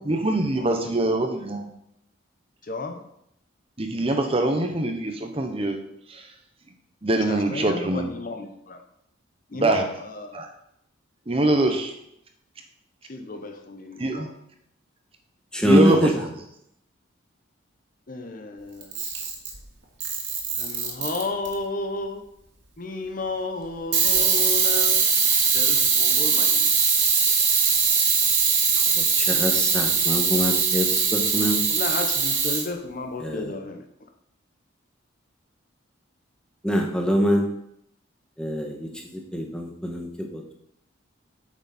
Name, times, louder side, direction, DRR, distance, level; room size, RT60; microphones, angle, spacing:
voice 1, 0.0-1.7 3.8-5.8 6.1-6.3 7.0-8.1 9.5-10.0 10.3-10.5 11.3-11.9 14.0-14.3 15.6-16.3, right 2 dB, 30° right, 0.8 m, -23 dB
voice 2, 2.7-3.0 7.3-8.8 9.5-9.9 10.2-10.4 13.1-14.3 18.1-18.9 20.6-22.2 22.8-25.1 25.4-26.7 31.7-33.8, left 3 dB, 40° left, 0.8 m, -32 dB
voice 3, 15.5-16.1 29.0-31.6 33.2-33.5 36.6-37.4 38.4-38.9 39.3-40.5, equal, 5° left, 1.1 m, -24 dB
Camera, 18.8-19.6 20.0-21.5 23.9-32.6, right 6 dB, 65° right, 2.1 m, -21 dB
8.7 x 6.4 x 4.2 m
head